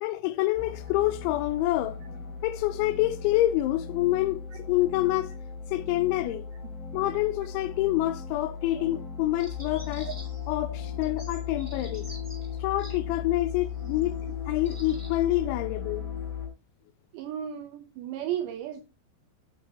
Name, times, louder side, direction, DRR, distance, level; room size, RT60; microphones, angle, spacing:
voice 1, 0.0-2.0 2.4-4.4 4.7-5.4 5.7-6.5 6.9-10.1 10.5-12.1 12.6-14.2 14.5-16.1, left 16 dB, 90° left, 2.6 m, -27 dB
sound 1, 0.5-16.5, left 7 dB, 35° left, 2.1 m, -37 dB
sound 2, 9.4-10.5 11.0-13.0 13.8-14.0 14.6-15.2, right 1 dB, 15° right, 1.4 m, -47 dB
voice 2, 17.1-18.8, right 10 dB, 85° right, 2.5 m, -34 dB
8.7 x 8.5 x 2.7 m
omnidirectional pair, 5.9 m